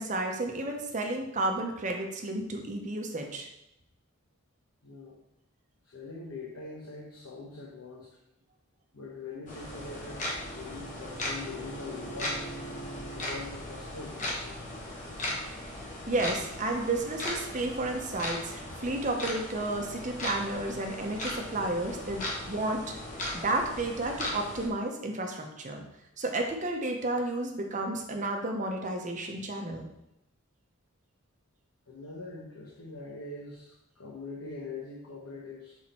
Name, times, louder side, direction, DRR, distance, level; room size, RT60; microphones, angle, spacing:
voice 1, 0.0-3.5 15.6-15.7 16.1-22.8 23.3-25.8 26.2-29.9, right 2 dB, 35° right, 2 dB, 0.8 m, -32 dB
voice 2, 4.8-5.2 5.8-8.1 8.9-10.2 10.5-12.5 13.1-14.6 31.9-35.8, left 3 dB, 75° left, -4 dB, 1.1 m, -43 dB
sound 1, 9.5-24.7, left 1 dB, 35° left, 1.2 m, -38 dB
Bowed string instrument, 9.6-13.4, right 3 dB, 20° left, 1.6 m, -45 dB
6.1 x 3.6 x 4.3 m, 0.84 s
head